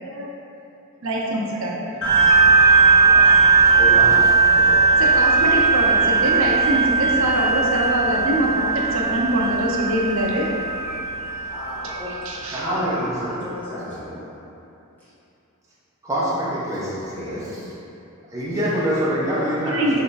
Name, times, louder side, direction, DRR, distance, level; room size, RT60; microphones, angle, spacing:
voice 1, 0.0-0.4 1.0-3.2 3.4-4.0 4.5-10.5 11.8-12.6 19.7-20.0, right 1 dB, 60° right, -3 dB, 0.6 m, -25 dB
sound 1, 2.0-12.9, right 4 dB, 85° left, 1.1 m, -18 dB
voice 2, 3.8-4.1 12.5-13.4 16.0-17.6 18.3-19.8, equal, 15° right, -9 dB, 0.8 m, -25 dB
voice 3, 11.5-12.1 12.5-14.2 15.0-15.1 17.0-17.4, left 1 dB, 10° left, -13 dB, 1.2 m, -33 dB
3.6 x 3.3 x 3.9 m, 2.8 s
head